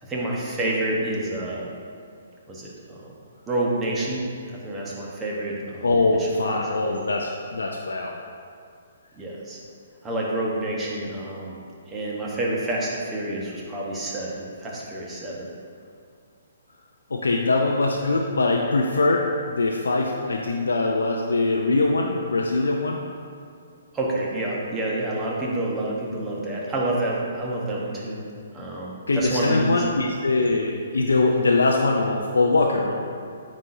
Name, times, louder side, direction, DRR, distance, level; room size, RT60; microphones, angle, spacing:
voice 1, 0.0-1.7 2.5-3.1 3.5-7.0 9.1-9.6 10.0-11.6 11.9-15.5 23.9-28.2 28.5-29.9, right 1 dB, 15° right, -4 dB, 1.1 m, -28 dB
voice 2, 5.8-8.1 17.1-23.0 29.1-33.1, left 3 dB, 85° left, 0 dB, 0.4 m, -22 dB
9.0 x 4.2 x 2.7 m, 2.3 s
hypercardioid pair, 135°, 0 cm